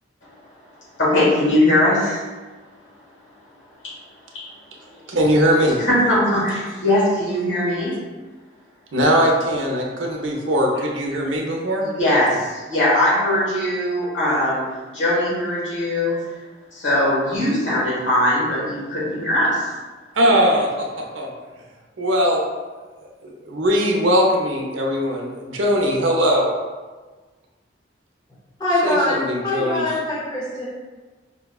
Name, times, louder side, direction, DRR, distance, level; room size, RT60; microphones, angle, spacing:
voice 1, 1.0-2.2 3.8-3.9 4.3-4.5 5.8-8.0 11.8-14.6 14.9-16.2 16.7-19.7, left 1 dB, 70° left, -7 dB, 1.4 m, -20 dB
voice 2, 5.1-5.8 8.9-11.8 20.2-21.3 22.0-22.4 23.0-26.6 28.7-30.0, equal, 80° right, -1 dB, 0.6 m, -20 dB
voice 3, 28.6-30.6, left 1 dB, 20° left, -7 dB, 0.6 m, -23 dB
5.1 x 2.2 x 2.3 m, 1.3 s
head